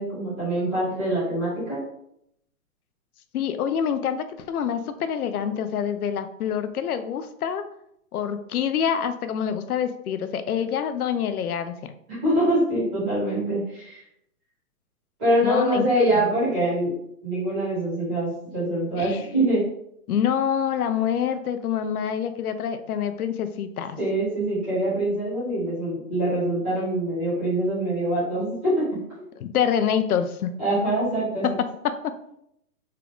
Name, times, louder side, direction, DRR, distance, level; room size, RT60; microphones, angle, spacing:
voice 1, 0.0-1.8 12.2-14.0 15.2-16.9 17.2-19.6 24.0-28.8 29.1-29.2 30.6-31.6, right 1 dB, 5° right, -14 dB, 0.6 m, -24 dB
voice 2, 3.3-7.6 8.1-11.7 15.4-16.2 19.0-19.3 20.1-24.0 29.4-30.5 31.8-32.1, left 8 dB, 75° left, 10 dB, 0.6 m, -26 dB
3.7 x 2.3 x 3.5 m, 0.75 s
hypercardioid pair, 175°, 44 cm